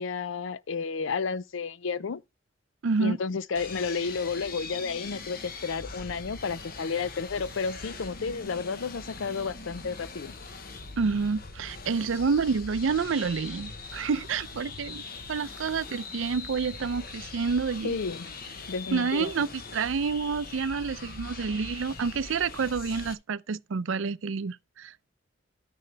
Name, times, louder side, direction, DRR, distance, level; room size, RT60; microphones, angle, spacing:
voice 1, 0.0-2.2 3.0-10.4 17.8-18.3 18.7-19.3, left 5 dB, 70° left, 0.5 m, -32 dB
voice 2, 2.8-3.2 11.0-15.0 15.3-18.0 18.9-25.1, right 5 dB, 70° right, 0.5 m, -28 dB
sound 1, 3.5-23.1, left 4 dB, 45° left, 1.0 m, -42 dB
12.5 x 6.7 x 3.3 m
head